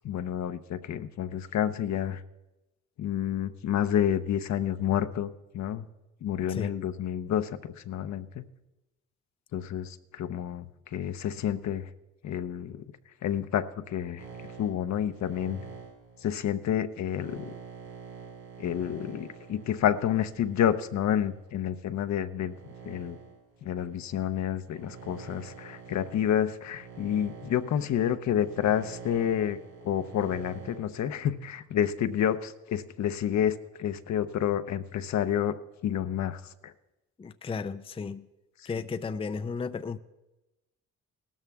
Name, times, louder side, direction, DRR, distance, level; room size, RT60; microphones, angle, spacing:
voice 1, 0.0-2.2 3.0-5.9 6.2-8.5 9.5-11.9 12.2-12.8 13.2-14.2 14.6-15.6 16.2-17.5 18.6-22.5 22.8-23.2 23.6-29.6 29.8-35.6 35.8-36.7, left 10 dB, 65° left, 0.8 m, -29 dB
sound 1, 14.2-21.5 22.2-30.8, right 6 dB, 70° right, 5.6 m, -47 dB
voice 2, 37.2-38.3 38.7-40.0, left 5 dB, 20° left, 0.5 m, -34 dB
17.0 x 13.0 x 3.6 m
cardioid pair, 90°, 30 cm